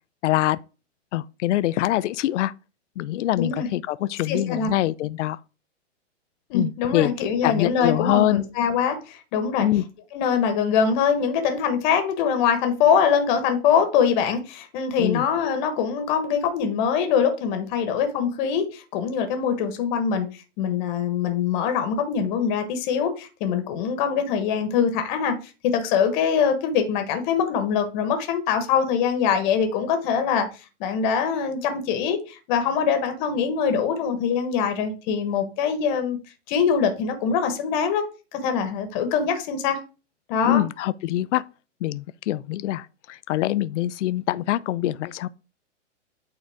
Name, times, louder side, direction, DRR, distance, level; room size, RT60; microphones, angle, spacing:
voice 1, 0.2-0.6 1.1-2.5 3.0-5.4 6.5-7.1 7.4-8.4 9.6-9.8 15.0-15.2 40.4-41.4 41.8-45.3, left 14 dB, 70° left, 0.5 m, -24 dB
voice 2, 3.3-3.7 4.3-4.7 6.5-9.7 10.1-20.3 20.6-25.4 25.6-30.5 30.8-36.2 36.5-38.0 38.3-39.8 40.3-40.6, left 7 dB, 40° left, 1.3 m, -23 dB
8.8 x 3.9 x 3.5 m
hypercardioid pair, 145°, 37 cm